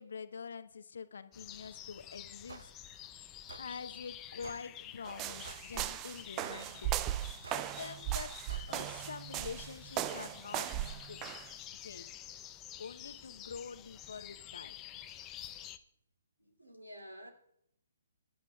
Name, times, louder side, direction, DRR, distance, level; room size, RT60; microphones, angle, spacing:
voice 1, 0.0-2.7 3.6-7.1 7.5-8.3 8.7-11.2 11.7-12.1 12.8-14.8, left 5 dB, 60° left, 0.8 m, -46 dB
sound 1, 1.3-15.8, left 11 dB, 20° left, 0.6 m, -50 dB
sound 2, 2.5-2.7 3.5-3.7 4.4-4.7 5.4-5.7 6.4-6.7 7.4-7.7 8.5-8.7, right 4 dB, 60° right, 0.8 m, -50 dB
sound 3, 5.0-11.5, right 13 dB, 20° right, 0.4 m, -37 dB
voice 2, 16.4-17.3, equal, 85° right, 2.5 m, -50 dB
23.0 x 11.0 x 2.3 m
figure-of-eight pair, 130°, 0 cm